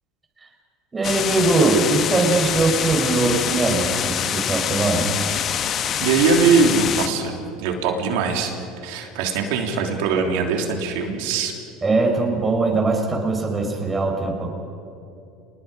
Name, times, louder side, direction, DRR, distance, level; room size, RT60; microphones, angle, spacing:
voice 1, 0.9-5.1 11.8-14.5, right 3 dB, 20° right, 1 dB, 5.1 m, -21 dB
sound 1, 1.0-7.1, left 9 dB, 45° left, 1.2 m, -25 dB
voice 2, 6.0-8.5 8.8-11.5, right 5 dB, 70° right, 3 dB, 3.2 m, -21 dB
28.0 x 20.5 x 5.1 m, 2.6 s
hypercardioid pair, 80°, 0 cm